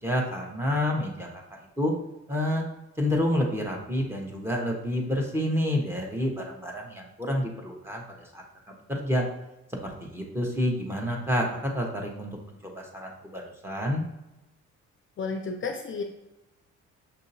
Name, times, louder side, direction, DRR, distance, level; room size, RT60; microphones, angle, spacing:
voice 1, 0.0-1.9 2.3-2.6 3.0-8.4 8.9-9.2 9.8-14.0, left 1 dB, 10° right, 0 dB, 1.1 m, -29 dB
voice 2, 15.2-16.0, left 4 dB, 40° left, 3 dB, 0.5 m, -32 dB
6.6 x 2.7 x 2.7 m, 0.96 s
cardioid pair, 90°, 30 cm